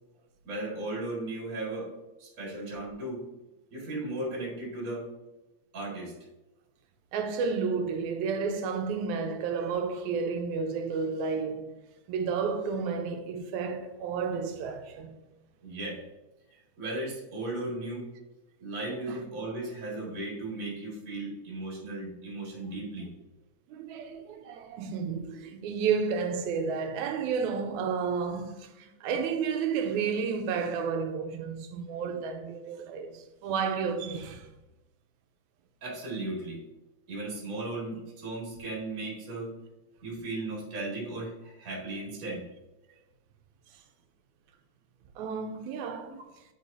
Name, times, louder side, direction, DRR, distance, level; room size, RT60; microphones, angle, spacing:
voice 1, 0.4-1.9 2.2-3.2 3.7-5.1 5.7-6.1 15.6-16.0 16.8-18.1 18.6-23.1 35.8-36.6 37.1-39.5 40.0-42.4, right 2 dB, 35° right, 1.8 m, -36 dB
voice 2, 7.1-11.7 12.1-15.2 19.1-19.2 23.7-34.5 45.2-46.2, right 5 dB, 90° right, 2.0 m, -31 dB
8.2 x 4.7 x 2.6 m
omnidirectional pair, 3.3 m